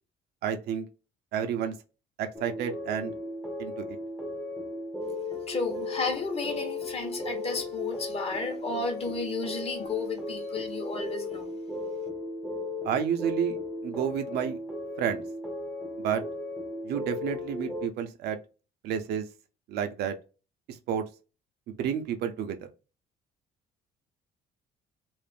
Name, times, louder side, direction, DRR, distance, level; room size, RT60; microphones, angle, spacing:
voice 1, 0.4-0.9 1.3-1.8 2.2-3.1 3.6-4.0 12.8-13.6 13.8-14.6 15.0-15.2 16.0-16.2 16.8-18.4 18.8-19.3 19.7-20.1 20.7-21.0 21.7-22.6, right 8 dB, 70° right, 0.5 m, -30 dB
sound 1, 2.3-17.9, left 2 dB, 5° left, 0.5 m, -36 dB
voice 2, 5.5-11.5, left 3 dB, 35° left, 0.8 m, -33 dB
2.4 x 2.0 x 3.3 m
cardioid pair, 110°, 17 cm